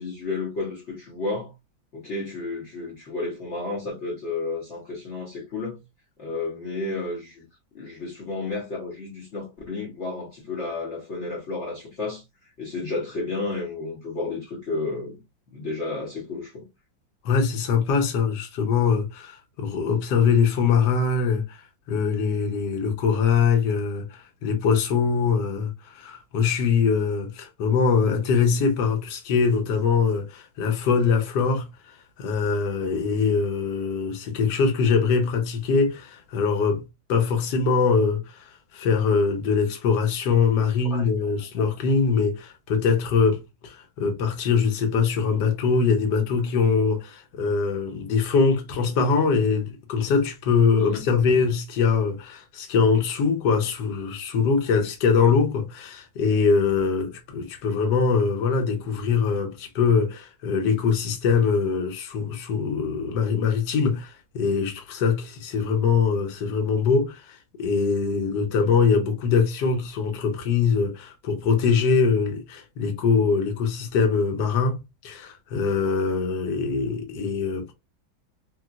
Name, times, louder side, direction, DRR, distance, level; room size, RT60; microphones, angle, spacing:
voice 1, 0.0-1.5 1.9-5.8 6.2-7.4 7.7-15.2 15.5-16.7 40.9-41.3 41.6-41.7 50.8-51.0, left 3 dB, 50° left, 0.9 m, -32 dB
voice 2, 17.2-21.6 21.9-31.7 32.2-36.8 37.1-74.8 75.0-77.7, left 5 dB, 65° left, 1.3 m, -23 dB
3.0 x 3.0 x 2.3 m
omnidirectional pair, 2.2 m